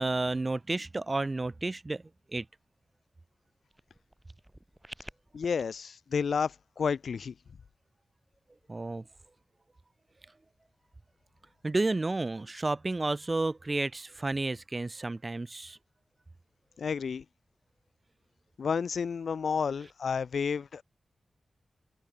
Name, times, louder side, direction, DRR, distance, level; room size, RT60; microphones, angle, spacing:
voice 1, 0.0-2.0 2.3-2.5 8.7-9.0 11.6-15.8, right 2 dB, 25° right, 0.4 m, -31 dB
sound 1, 3.7-5.6, right 1 dB, 5° right, 1.1 m, -50 dB
voice 2, 5.3-7.3 16.8-17.2 18.6-20.8, left 6 dB, 75° left, 0.4 m, -31 dB
wide cardioid pair, 165°, 0 cm